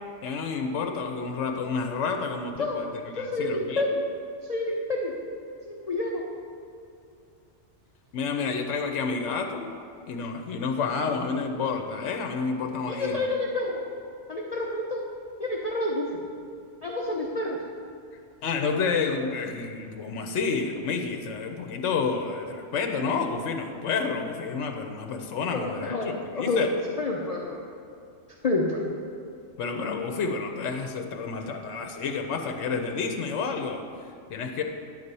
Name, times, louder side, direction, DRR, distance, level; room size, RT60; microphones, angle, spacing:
voice 1, 0.2-3.8 8.1-9.7 10.1-13.3 18.4-26.7 29.6-33.8 34.3-34.6, left 5 dB, 75° left, 4 dB, 1.0 m, -29 dB
voice 2, 3.2-4.1 4.5-5.1 5.7-6.2 12.9-13.8 14.3-15.0 15.4-16.1 16.8-17.6 25.5-26.7 27.0-27.6 28.4-28.8, left 2 dB, 40° left, -3 dB, 0.7 m, -28 dB
10.0 x 4.2 x 6.8 m, 2.5 s
omnidirectional pair, 1.3 m